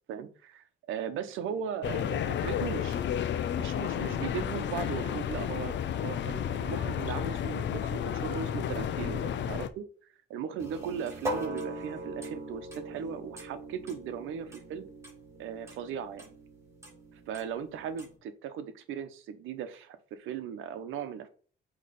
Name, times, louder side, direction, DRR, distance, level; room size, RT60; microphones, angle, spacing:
voice 1, 0.1-3.0 3.6-9.8 10.3-14.8 15.4-16.2 17.1-21.3, right 8 dB, 90° right, 11 dB, 0.9 m, -38 dB
sound 1, 1.8-9.7, left 9 dB, 65° left, 0.7 m, -32 dB
sound 2, 10.6-18.1, right 1 dB, 15° right, 3.2 m, -41 dB
8.4 x 3.3 x 4.1 m, 0.40 s
cardioid pair, 90°, 20 cm